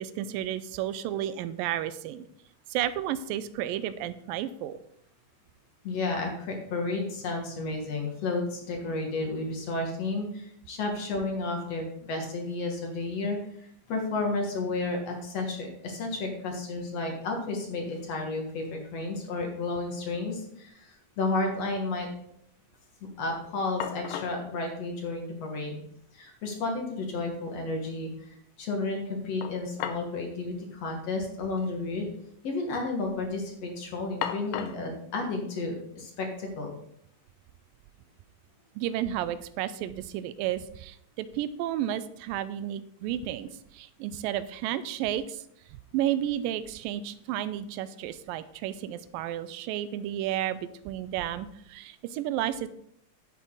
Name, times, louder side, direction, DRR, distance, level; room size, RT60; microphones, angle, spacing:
voice 1, 0.0-2.3 2.7-4.8 38.8-45.4 45.7-52.7, right 11 dB, 85° right, 14 dB, 2.3 m, -32 dB
voice 2, 5.8-22.1 23.2-25.8 26.1-32.1 32.4-36.7, left 3 dB, 55° left, 2 dB, 2.3 m, -32 dB
sound 1, 17.3-17.4 17.6-18.3 18.6-19.5 19.8-19.9 23.3-23.4 23.8-24.4 25.6-25.7 26.0-26.1 29.4-30.2 30.4-30.6 31.5-31.7 32.0-32.5 32.9-33.3 34.2-34.9, left 10 dB, 85° left, 2.4 m, -37 dB
11.0 x 8.3 x 3.8 m, 0.71 s
omnidirectional pair, 4.0 m